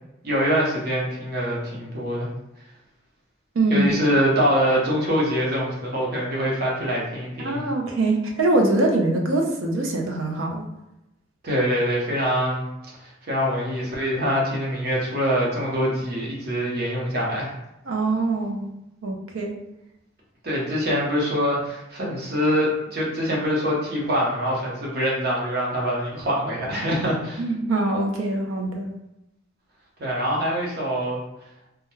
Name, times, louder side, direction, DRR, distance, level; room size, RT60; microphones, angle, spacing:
voice 1, 0.2-2.3 3.7-7.6 11.4-12.7 13.0-17.5 20.4-27.4 30.0-31.2, equal, 50° right, -4 dB, 0.8 m, -24 dB
voice 2, 3.5-3.9 7.4-10.6 17.9-18.7 19.0-19.5 27.4-28.9, right 2 dB, 80° right, 1 dB, 0.5 m, -23 dB
2.3 x 2.1 x 3.0 m, 0.90 s
head